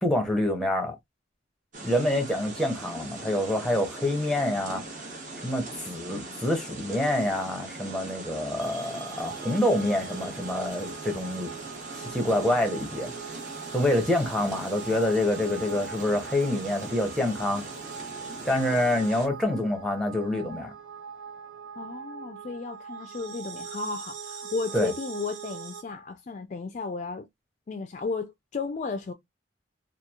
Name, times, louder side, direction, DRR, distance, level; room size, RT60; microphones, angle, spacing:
voice 1, 0.0-1.0 1.8-5.1 5.4-11.5 12.0-13.1 13.7-17.6 18.4-20.7 24.7-24.9, left 1 dB, 5° left, 0.6 m, -27 dB
sound 1, 1.7-19.3, right 2 dB, 40° right, 0.8 m, -41 dB
sound 2, 8.6-25.8, right 6 dB, 70° right, 1.1 m, -42 dB
voice 2, 21.8-27.3 27.7-29.1, left 4 dB, 35° left, 0.3 m, -34 dB
2.9 x 2.3 x 2.3 m
head